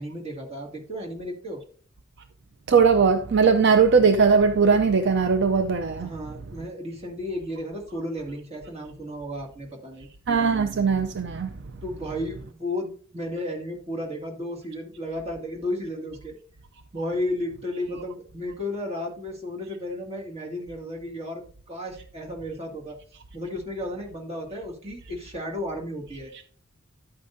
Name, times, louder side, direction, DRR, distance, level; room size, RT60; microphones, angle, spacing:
voice 1, 0.0-1.6 6.0-10.1 11.8-16.4 16.9-23.0 23.3-26.3, left 1 dB, 30° right, 2.1 m, -33 dB
voice 2, 2.7-6.1 10.3-11.5, right 5 dB, 60° right, 0.5 m, -19 dB
11.0 x 8.5 x 2.6 m
head